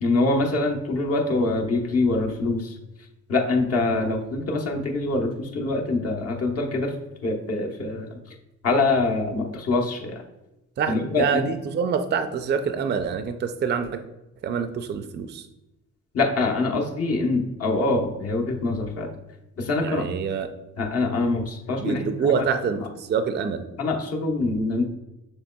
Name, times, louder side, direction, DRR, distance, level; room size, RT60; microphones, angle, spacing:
voice 1, 0.0-2.7 3.3-6.9 7.2-8.1 8.6-10.2 10.9-11.4 16.1-19.1 19.6-20.1 20.8-22.3 22.8-22.9 23.8-24.8, left 3 dB, 55° left, 1 dB, 1.0 m, -24 dB
voice 2, 10.8-14.0 14.4-15.5 19.8-20.5 21.8-23.6, right 6 dB, 35° right, 8 dB, 0.4 m, -26 dB
6.8 x 3.1 x 2.2 m, 0.96 s
cardioid pair, 90°, 30 cm